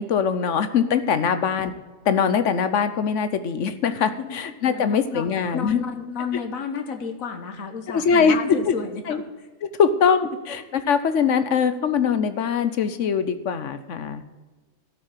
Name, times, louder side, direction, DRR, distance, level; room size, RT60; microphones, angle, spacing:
voice 1, 0.0-1.7 2.1-5.8 7.9-8.4 8.7-8.8 9.1-9.2 9.8-14.2, left 6 dB, 65° left, 11 dB, 1.1 m, -22 dB
voice 2, 4.1-4.4 4.6-5.3 5.5-9.5, left 5 dB, 80° left, 6 dB, 1.5 m, -32 dB
13.0 x 6.1 x 8.3 m, 1.3 s
omnidirectional pair, 1.4 m